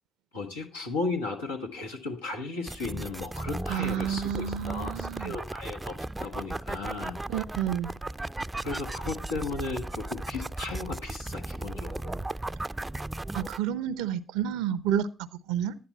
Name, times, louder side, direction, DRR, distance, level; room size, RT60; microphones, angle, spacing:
voice 1, 0.3-7.2 8.6-12.1, left 3 dB, 90° left, 1.6 m, -35 dB
sound 1, 2.7-13.6, right 2 dB, 20° right, 0.5 m, -36 dB
voice 2, 3.7-5.4 7.3-7.9 13.3-15.8, right 9 dB, 75° right, 0.6 m, -30 dB
11.5 x 9.6 x 4.2 m
hypercardioid pair, 45°, 0 cm